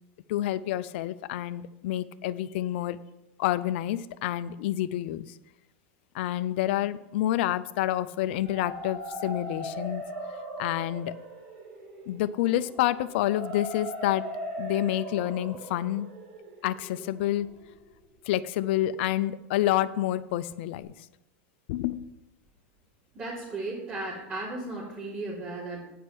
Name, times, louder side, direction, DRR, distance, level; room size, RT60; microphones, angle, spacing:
voice 1, 0.3-3.0 3.4-5.4 6.1-10.0 10.6-11.1 12.1-14.3 14.6-16.1 16.6-17.5 18.3-20.9 21.7-22.1, left 13 dB, 70° left, 15 dB, 0.5 m, -28 dB
sound 1, 8.3-18.1, equal, 70° right, 2.5 m, -39 dB
voice 2, 23.1-25.8, right 2 dB, 30° right, -9 dB, 3.5 m, -35 dB
9.4 x 5.5 x 6.1 m, 0.95 s
supercardioid pair, 125°, 6 cm